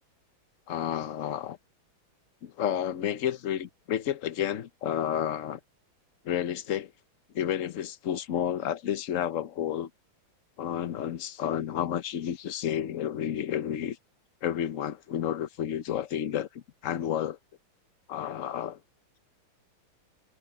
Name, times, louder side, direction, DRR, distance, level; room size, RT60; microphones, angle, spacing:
voice 1, 0.7-1.6 2.4-5.6 6.2-6.9 7.3-9.9 10.6-14.0 14.4-17.4 18.1-18.8, left 10 dB, 60° left, 0.8 m, -31 dB
omnidirectional pair, 2.3 m